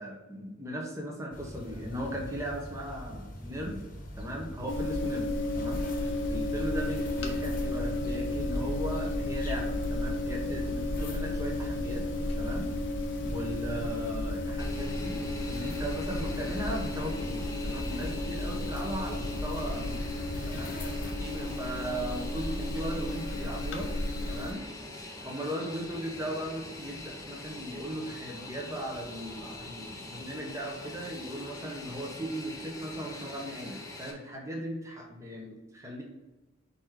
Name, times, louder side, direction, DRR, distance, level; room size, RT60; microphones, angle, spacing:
voice 1, 0.0-3.8 4.2-5.3 5.5-5.8 6.3-12.0 12.4-12.7 13.2-15.2 15.5-20.0 20.5-20.7 21.2-23.9 24.3-24.6 25.2-36.0, equal, 15° right, -1 dB, 1.1 m, -37 dB
sound 1, 1.3-21.1, equal, 40° left, 1.2 m, -42 dB
sound 2, 4.7-24.5, left 2 dB, 60° left, 0.7 m, -33 dB
Fixed-wing aircraft airplane, 14.6-34.1, left 2 dB, 15° left, 0.7 m, -44 dB
4.7 x 4.2 x 4.7 m, 1.1 s
head